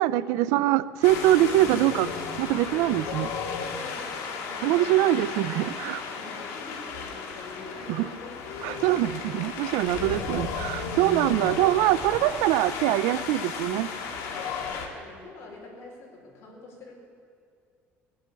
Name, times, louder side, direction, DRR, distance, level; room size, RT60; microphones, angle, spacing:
voice 1, 0.0-2.1 2.4-3.3 4.6-6.0 7.9-8.0 8.6-9.1 9.4-13.9, right 14 dB, 90° right, 0.4 m, -23 dB
Wind, 1.0-14.9, left 5 dB, 80° left, 1.8 m, -34 dB
voice 2, 3.5-5.1 6.1-9.1 9.9-10.3 14.3-16.9, left 3 dB, 60° left, 4.7 m, -46 dB
sound 1, 10.0-12.9, right 2 dB, 25° right, 1.3 m, -49 dB
19.5 x 7.7 x 8.3 m
cardioid pair, 130°, 5 cm